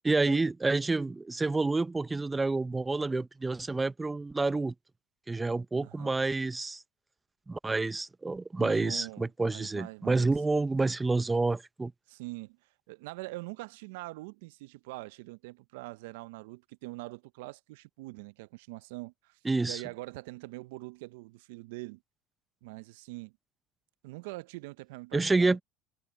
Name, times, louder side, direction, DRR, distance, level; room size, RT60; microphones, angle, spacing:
voice 1, 0.0-4.7 5.3-6.8 7.5-11.9 19.4-19.8 25.1-25.6, right 3 dB, 15° right, 0.9 m, -28 dB
voice 2, 5.8-6.1 8.6-10.3 12.1-12.6 12.9-22.0 22.6-23.3 24.0-25.6, right 22 dB, 75° right, 0.9 m, -43 dB
hypercardioid pair, 80°, 0 cm